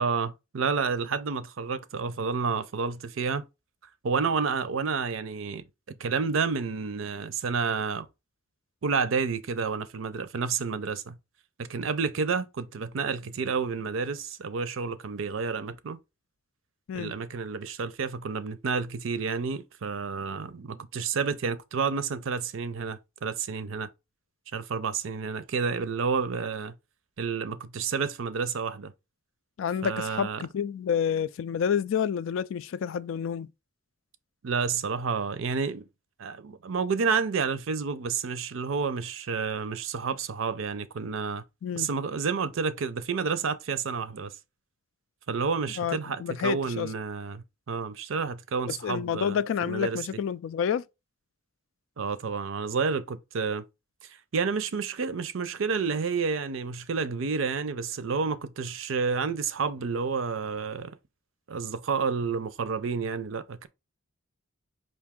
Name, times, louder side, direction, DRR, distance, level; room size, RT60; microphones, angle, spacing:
voice 1, 0.0-3.4 4.0-5.6 6.0-8.1 8.8-11.2 11.6-16.0 16.9-23.9 24.5-26.7 27.2-28.9 29.8-30.5 34.4-35.8 36.2-41.4 41.8-44.3 45.3-50.0 52.0-53.6 54.0-61.0 61.5-63.7, right 5 dB, 70° right, 0.5 m, -30 dB
voice 2, 29.6-33.5 41.6-41.9 45.8-46.9 48.8-50.8, left 7 dB, 70° left, 0.3 m, -29 dB
4.6 x 2.6 x 3.6 m
head